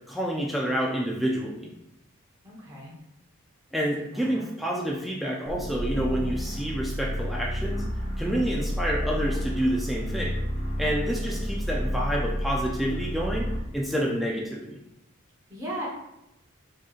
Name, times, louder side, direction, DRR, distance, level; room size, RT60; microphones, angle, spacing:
voice 1, 0.1-1.7 3.7-7.8 8.2-10.3 10.8-14.8, equal, ahead, -3 dB, 0.4 m, -28 dB
voice 2, 2.4-2.9 4.0-4.5 15.5-15.9, right 1 dB, 15° right, -6 dB, 1.1 m, -37 dB
sound 1, 5.5-13.7, equal, 35° left, 1.0 m, -30 dB
4.6 x 3.0 x 2.5 m, 0.85 s
head